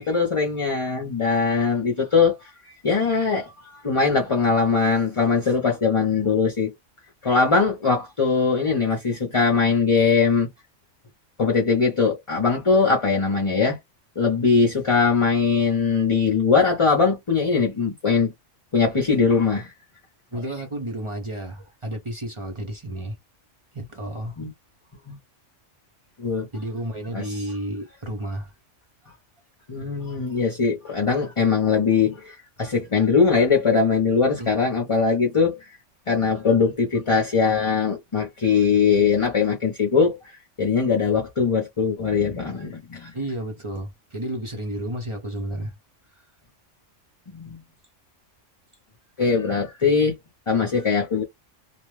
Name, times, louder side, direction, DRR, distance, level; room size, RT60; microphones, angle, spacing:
voice 1, 0.0-6.7 7.2-10.5 11.4-13.8 14.2-18.3 18.7-19.7 24.4-24.5 25.1-25.2 26.2-26.5 27.1-27.2 29.7-35.6 36.1-40.2 40.6-43.1 47.3-47.6 49.2-50.2 50.5-51.2, left 5 dB, 30° left, 0.7 m, -21 dB
voice 2, 20.3-23.2 23.7-24.4 26.5-28.5 34.4-34.5 43.1-45.8 46.1-46.3, right 1 dB, 30° right, 0.7 m, -32 dB
2.5 x 2.2 x 3.1 m
omnidirectional pair, 1.3 m